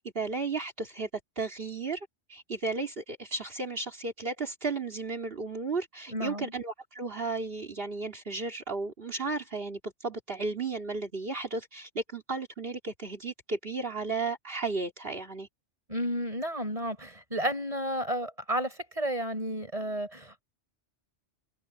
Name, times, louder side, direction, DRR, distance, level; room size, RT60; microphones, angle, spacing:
voice 1, 0.1-1.1 1.4-15.5, right 3 dB, 55° right, 2.9 m, -34 dB
voice 2, 6.1-6.5 15.9-20.4, equal, 30° right, 5.9 m, -32 dB
open air
omnidirectional pair, 1.2 m